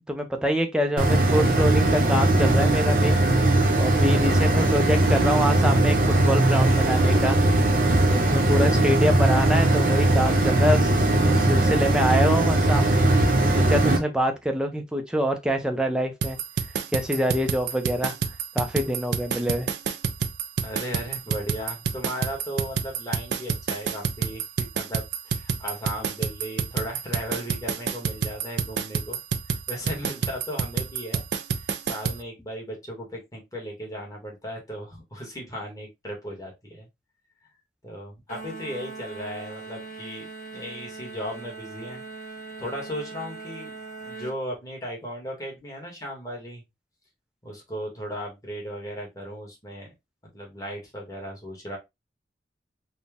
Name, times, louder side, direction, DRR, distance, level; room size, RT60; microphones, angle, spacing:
voice 1, 0.1-3.1 3.7-7.4 8.0-10.9 11.2-12.9 13.4-16.4 16.9-18.1 18.5-19.7, equal, 5° right, 0.6 m, -25 dB
sound 1, 1.0-14.0, right 2 dB, 50° right, 0.9 m, -20 dB
sound 2, 16.2-32.2, right 6 dB, 75° right, 0.4 m, -28 dB
voice 2, 20.6-29.2 29.5-31.2 31.5-36.9 37.4-37.5 37.8-42.0 42.6-46.6 47.4-49.9 50.3-51.8, equal, 20° left, 1.5 m, -36 dB
sound 3, 38.3-44.4, right 3 dB, 45° left, 1.7 m, -40 dB
4.2 x 2.3 x 3.4 m
head